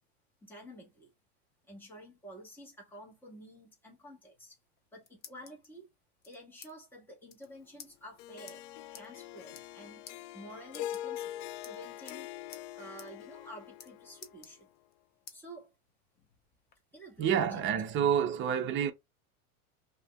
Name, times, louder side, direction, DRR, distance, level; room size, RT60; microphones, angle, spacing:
voice 1, 0.4-1.1 1.7-4.6 4.9-5.9 6.2-8.6 8.9-10.0 10.3-12.3 12.7-14.7 15.3-15.7 16.9-17.8, equal, 5° left, 1.7 m, -50 dB
sound 1, 4.6-5.7 6.2-6.7 7.0-7.1 7.3-7.5 7.8-7.9 8.5-8.6 8.9-9.1 9.4-9.8 10.1-10.2 10.7-11.3 11.6-12.2 12.5-12.7 13.0-13.1 13.4-13.9 14.2-14.9 15.3-15.4 15.9-16.8, left 6 dB, 25° left, 0.8 m, -51 dB
Harp, 8.2-14.6, left 13 dB, 60° left, 0.6 m, -43 dB
voice 2, 17.2-18.9, right 8 dB, 30° right, 0.7 m, -28 dB
5.6 x 2.9 x 2.4 m
supercardioid pair, 125°, 41 cm